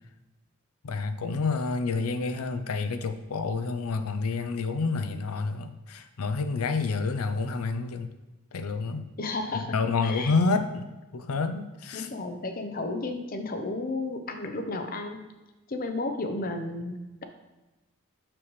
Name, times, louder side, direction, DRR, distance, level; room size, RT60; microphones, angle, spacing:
voice 1, 0.8-8.1 8.5-9.0 9.7-12.1, left 4 dB, 85° left, 8 dB, 0.6 m, -29 dB
voice 2, 9.2-10.3 11.9-15.2 15.7-17.2, left 2 dB, 40° left, 6 dB, 0.6 m, -33 dB
6.7 x 6.0 x 3.2 m, 1.1 s
head